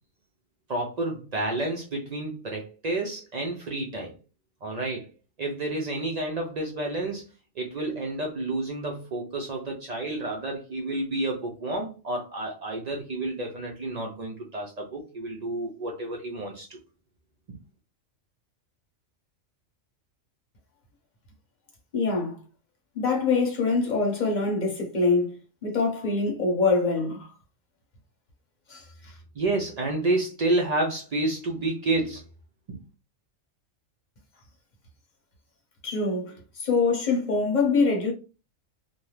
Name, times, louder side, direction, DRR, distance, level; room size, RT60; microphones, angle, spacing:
voice 1, 0.7-4.1 4.6-5.1 5.4-7.2 7.6-16.8 29.3-32.2 32.7-32.8, right 2 dB, 80° right, 0.3 m, -30 dB
voice 2, 21.9-22.4 22.9-25.3 25.6-27.3 28.7-29.1 35.8-38.1, left 4 dB, 40° left, 0.8 m, -24 dB
2.6 x 2.2 x 3.1 m
omnidirectional pair, 1.4 m